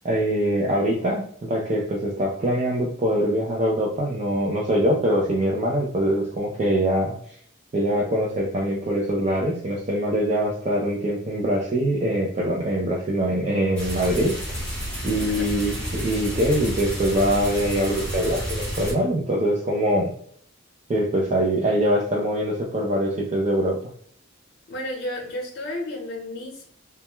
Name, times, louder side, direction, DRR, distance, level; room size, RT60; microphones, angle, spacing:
voice 1, 0.0-7.3 7.7-14.6 15.0-20.1 20.9-23.8, equal, 35° right, -3 dB, 0.4 m, -23 dB
sound 1, 13.8-18.9, equal, 5° left, 0.9 m, -30 dB
voice 2, 15.1-15.5 24.7-26.6, left 1 dB, 50° left, 0 dB, 0.7 m, -32 dB
2.2 x 2.1 x 2.9 m, 0.62 s
head